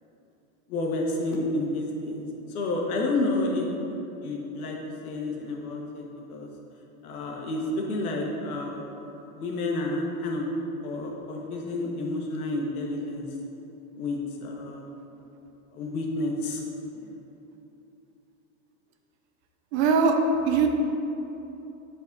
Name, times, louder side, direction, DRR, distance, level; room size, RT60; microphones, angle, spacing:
voice 1, 0.7-2.2 2.5-3.7 4.2-4.8 5.0-6.5 7.0-8.8 9.3-10.4 10.8-13.2 14.0-14.8 15.7-16.6 16.9-17.1, left 2 dB, 75° left, -1 dB, 1.4 m, -30 dB
voice 2, 19.7-20.1 20.4-20.7, right 6 dB, 50° right, 4 dB, 0.7 m, -20 dB
8.0 x 4.2 x 3.9 m, 3.0 s
hypercardioid pair, 115°, 44 cm